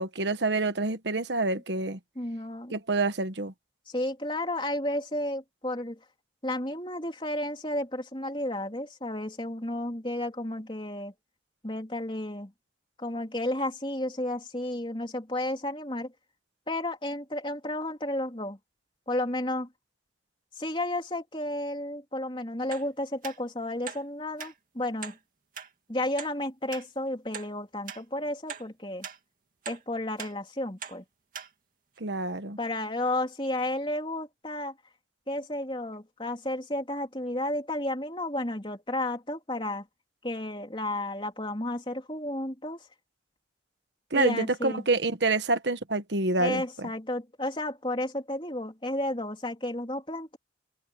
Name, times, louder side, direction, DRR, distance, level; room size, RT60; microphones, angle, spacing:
voice 1, 0.0-2.0 2.7-3.5 32.0-32.6 44.1-46.9, right 3 dB, 70° right, 1.3 m, -27 dB
voice 2, 2.2-2.8 3.9-6.0 6.4-11.1 11.6-12.5 13.0-16.1 16.7-18.6 19.1-19.7 20.6-25.2 25.9-29.1 29.7-31.0 32.6-34.7 35.3-39.9 40.2-42.8 44.1-44.8 46.4-50.4, left 1 dB, 25° left, 3.6 m, -32 dB
sound 1, 22.7-22.9 23.2-23.4 23.8-24.0 24.4-24.5 25.0-25.2 25.5-25.7 26.2-26.3 26.7-26.8 27.3-27.5 27.9-28.0 28.5-28.6 29.0-29.2 29.6-29.8 30.2-30.3 30.8-31.0 31.3-31.5 32.0-32.1, right 7 dB, 45° right, 2.5 m, -40 dB
head